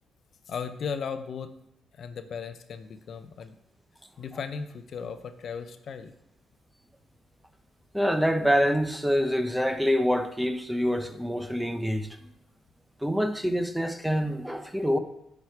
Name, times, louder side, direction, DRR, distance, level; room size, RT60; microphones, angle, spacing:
voice 1, 0.5-1.5 1.9-3.6 4.2-6.2, left 6 dB, 55° left, 10 dB, 0.6 m, -36 dB
voice 2, 7.9-12.1 13.0-15.0, equal, 5° right, 9 dB, 0.6 m, -26 dB
8.9 x 4.9 x 4.7 m, 0.79 s
cardioid pair, 90°, 0 cm